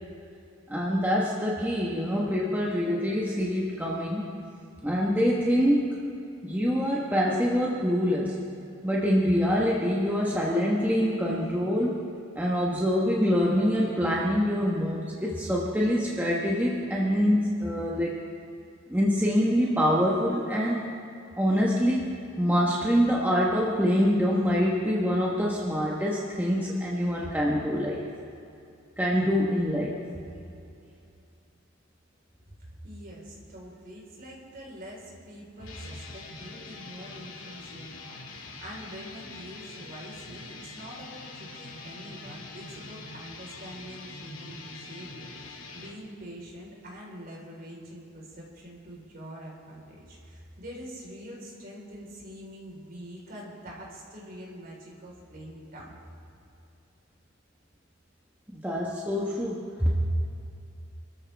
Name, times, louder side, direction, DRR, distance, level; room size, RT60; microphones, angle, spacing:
voice 1, 0.7-4.3 4.8-5.9 6.4-8.4 8.8-12.1 12.3-18.2 18.9-20.8 21.4-28.1 29.0-30.0 58.5-59.9, equal, 10° right, -4 dB, 1.3 m, -25 dB
voice 2, 32.8-56.0, equal, 45° right, -3 dB, 4.4 m, -44 dB
sound 1, 35.6-46.0, left 3 dB, 85° left, 2.0 m, -44 dB
26.5 x 13.5 x 3.5 m, 2.7 s
head